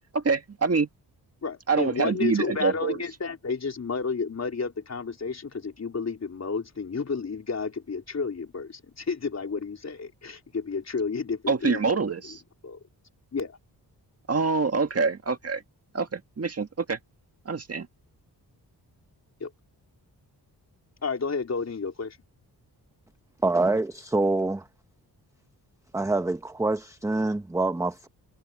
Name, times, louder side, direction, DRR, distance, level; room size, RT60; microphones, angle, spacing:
voice 1, 0.1-0.9 1.7-3.0 11.5-12.4 14.3-15.6 15.9-17.0 17.5-17.9, right 4 dB, 40° right, 1.8 m, -25 dB
voice 2, 1.4-11.8 12.6-12.8 13.3-13.6 19.4-19.5 21.0-22.2, left 5 dB, 40° left, 4.0 m, -31 dB
voice 3, 23.4-24.6 25.9-28.1, right 2 dB, 10° right, 0.7 m, -25 dB
wide cardioid pair, 120°, 39 cm